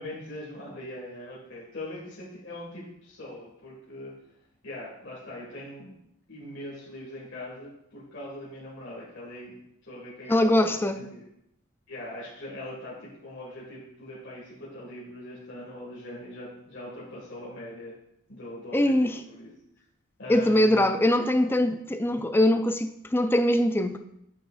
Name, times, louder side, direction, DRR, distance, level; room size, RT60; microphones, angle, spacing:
voice 1, 0.0-4.1 4.6-5.9 6.3-9.6 9.8-11.2 11.9-17.9 18.3-19.5 20.2-20.9, left 1 dB, 60° left, -7 dB, 1.9 m, -41 dB
voice 2, 10.3-11.0 18.7-19.2 20.3-24.0, left 1 dB, 10° left, 8 dB, 0.3 m, -22 dB
8.8 x 6.1 x 2.5 m, 0.80 s
head